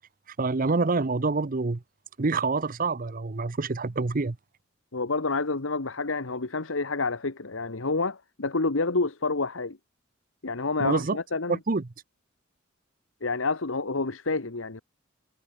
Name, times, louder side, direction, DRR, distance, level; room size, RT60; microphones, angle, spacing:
voice 1, 0.4-1.8 2.2-4.4 10.8-11.2 11.5-11.9, right 3 dB, 45° right, 0.7 m, -26 dB
voice 2, 4.9-9.8 10.4-11.6 13.2-14.8, left 3 dB, 85° left, 1.4 m, -28 dB
head